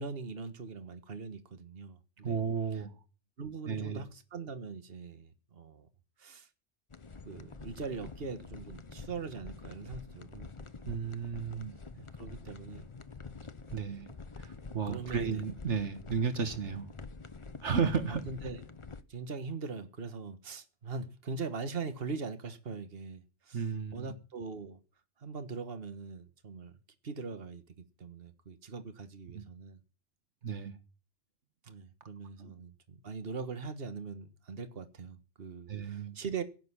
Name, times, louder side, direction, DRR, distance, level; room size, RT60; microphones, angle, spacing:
voice 1, 0.0-2.4 2.7-2.8 3.4-5.9 6.2-6.5 7.3-10.5 11.9-12.9 14.9-15.4 18.1-18.6 19.1-23.7 23.9-24.8 25.2-26.7 27.0-29.8 31.6-36.4, right 4 dB, 55° right, 1.7 m, -41 dB
voice 2, 2.2-2.9 3.7-4.0 10.9-11.8 13.7-14.1 14.4-16.9 17.6-18.2 23.5-24.1 29.3-29.4 30.4-30.7 32.4-32.5 35.7-36.2, right 6 dB, 75° right, 1.7 m, -33 dB
sound 1, 6.9-19.0, left 4 dB, 30° left, 0.9 m, -47 dB
17.0 x 6.8 x 9.9 m
omnidirectional pair, 1.2 m